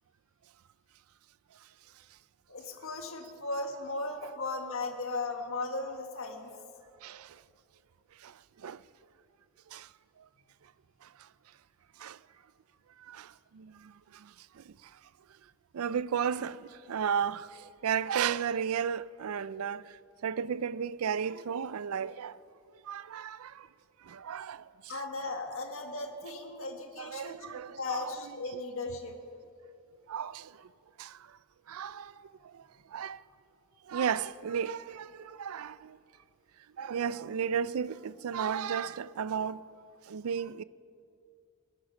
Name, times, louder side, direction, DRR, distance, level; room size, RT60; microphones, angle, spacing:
voice 1, 2.5-6.5 24.9-29.2, left 3 dB, 65° left, 1.8 m, -37 dB
voice 2, 7.0-7.4 8.2-8.3 8.6-8.8 9.7-9.9 11.0-11.1 12.0-12.2 13.0-14.7 15.7-20.0 20.2-22.4 22.8-23.7 24.0-25.0 27.0-28.4 30.1-30.7 31.0-31.2 31.7-32.7 32.9-33.2 33.9-36.0 36.8-39.6 40.1-40.6, right 7 dB, 90° right, 0.4 m, -34 dB
21.0 x 11.5 x 5.8 m
head